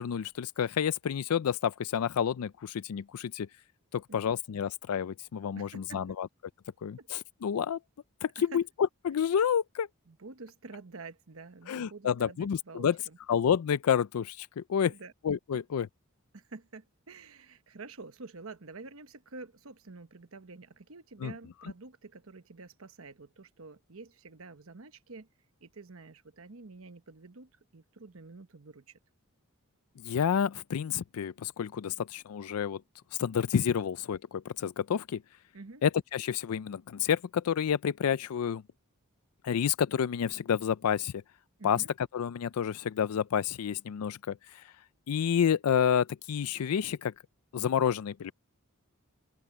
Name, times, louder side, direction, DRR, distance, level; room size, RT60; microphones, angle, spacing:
voice 1, 0.0-3.5 3.9-6.3 6.8-7.8 8.2-8.6 9.0-9.9 11.7-13.0 13.3-14.9 15.2-15.9 21.2-21.3 21.6-21.7 30.0-32.8 33.2-35.2 35.8-38.6 39.4-41.1 41.6-41.8 42.1-44.7 45.1-47.1 47.5-48.3, left 8 dB, 90° left, 0.4 m, -29 dB
voice 2, 5.5-6.0 7.0-7.1 8.4-8.6 10.1-13.2 14.8-15.1 16.3-25.3 25.6-29.0 35.5-35.8 41.6-41.9, right 3 dB, 70° right, 1.1 m, -48 dB
open air
head